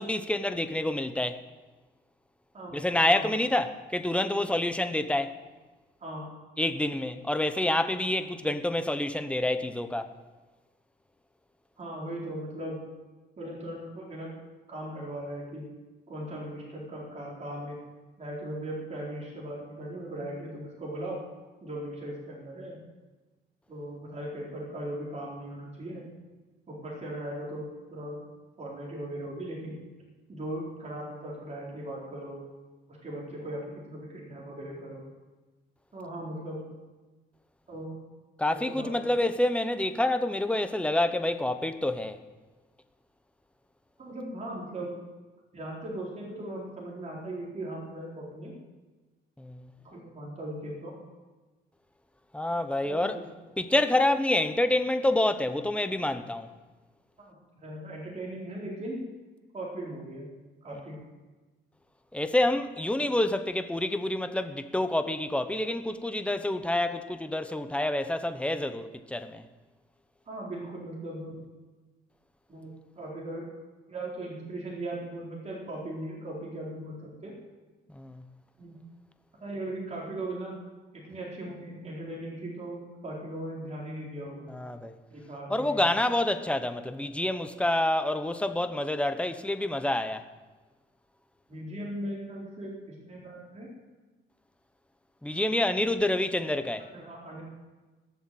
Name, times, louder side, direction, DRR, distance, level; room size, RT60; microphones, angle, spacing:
voice 1, 0.0-1.4 2.7-5.4 6.6-10.1 38.4-42.2 49.4-49.7 52.3-53.2 53.6-56.5 62.1-69.4 77.9-78.2 84.5-85.0 85.5-90.2 95.2-96.9, left 1 dB, 5° left, 1.0 m, -27 dB
voice 2, 2.5-3.3 6.0-6.3 11.8-12.8 13.4-14.3 14.7-15.6 16.1-17.8 18.2-21.2 21.6-22.8 23.7-26.0 26.7-28.2 28.6-29.8 30.3-32.4 32.9-35.0 35.9-36.7 37.7-37.9 38.5-39.1 44.0-45.0 45.5-48.5 49.8-50.9 52.8-53.1 57.2-57.3 57.6-59.0 59.5-60.3 60.6-61.0 70.3-71.4 72.5-73.5 73.9-77.3 78.6-78.8 79.4-80.6 80.9-84.5 85.1-85.9 91.5-93.7 96.9-97.4, right 1 dB, 35° right, 4.3 m, -38 dB
17.5 x 7.2 x 7.8 m
cardioid pair, 90°, 20 cm